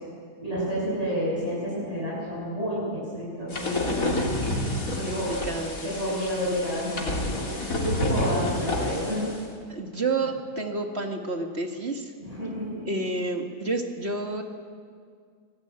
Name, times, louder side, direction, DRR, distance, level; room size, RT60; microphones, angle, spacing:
voice 1, 0.4-2.8 3.1-4.4 5.0-5.4 5.8-7.5 7.8-9.4 12.2-12.9, equal, 20° right, -7 dB, 7.6 m, -30 dB
sound 1, 3.5-9.4, left 1 dB, 55° left, 3.5 m, -29 dB
voice 2, 4.8-6.2 9.7-12.1 12.9-14.4, right 3 dB, 40° right, 4 dB, 2.1 m, -30 dB
25.0 x 19.0 x 8.9 m, 2.1 s
omnidirectional pair, 1.7 m